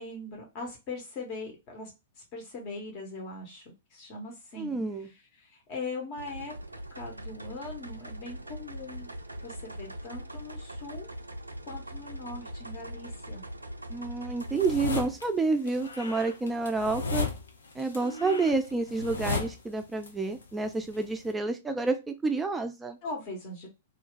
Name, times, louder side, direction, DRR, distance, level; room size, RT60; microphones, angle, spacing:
voice 1, 0.0-6.5 6.9-9.1 9.4-11.1 11.7-13.4 18.0-18.5 23.0-23.7, left 3 dB, 40° left, 0 dB, 1.0 m, -41 dB
voice 2, 4.6-5.1 13.9-17.3 17.8-23.0, right 3 dB, 10° right, 5 dB, 0.4 m, -29 dB
sound 1, 6.2-15.0, right 1 dB, 90° right, 0.4 m, -41 dB
sound 2, 14.4-15.3 15.7-20.1 20.3-21.3, left 4 dB, 70° left, 0.6 m, -34 dB
2.4 x 2.3 x 3.7 m, 0.25 s
figure-of-eight pair, 105°, 0 cm